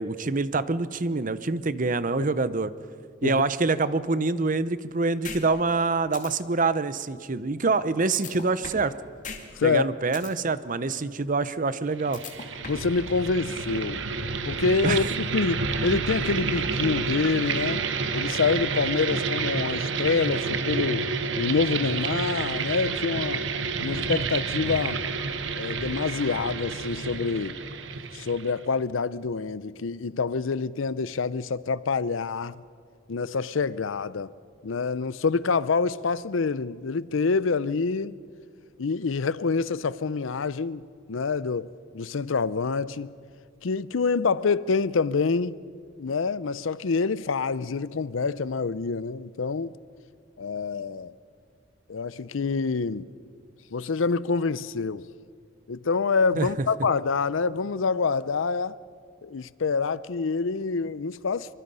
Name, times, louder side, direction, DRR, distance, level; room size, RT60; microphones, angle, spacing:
voice 1, 0.0-2.7 3.2-8.9 9.6-12.2 14.8-15.1 56.4-56.5, right 3 dB, 40° right, 0.8 m, -26 dB
sound 1, 5.2-5.4 5.8-5.9 6.1-6.3 8.1-8.9 9.2-9.4 9.7-10.3 12.1-12.9, left 5 dB, 40° left, 2.4 m, -37 dB
voice 2, 9.6-9.9 12.7-14.0 14.4-17.8 18.1-21.0 21.4-23.4 23.8-25.0 25.5-27.6 28.1-32.6 33.1-34.3 34.6-38.2 38.8-40.8 41.1-41.7 41.9-43.1 43.6-45.6 46.0-49.8 50.4-51.1 51.9-53.1 53.7-55.1 55.7-58.8 59.2-61.5, left 4 dB, 80° left, 0.6 m, -26 dB
sound 2, 11.9-28.6, right 4 dB, 65° right, 1.2 m, -29 dB
25.5 x 24.0 x 5.6 m
head